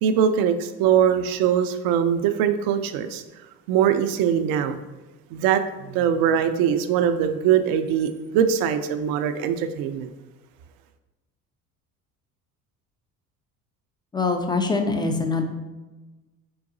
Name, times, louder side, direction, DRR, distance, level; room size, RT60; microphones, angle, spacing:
voice 1, 0.0-3.2 3.7-4.8 5.3-10.1, right 8 dB, 50° right, 9 dB, 0.5 m, -22 dB
voice 2, 14.1-15.4, left 3 dB, 10° left, 5 dB, 0.4 m, -23 dB
4.5 x 3.9 x 2.6 m, 1.1 s
hypercardioid pair, 65°, 46 cm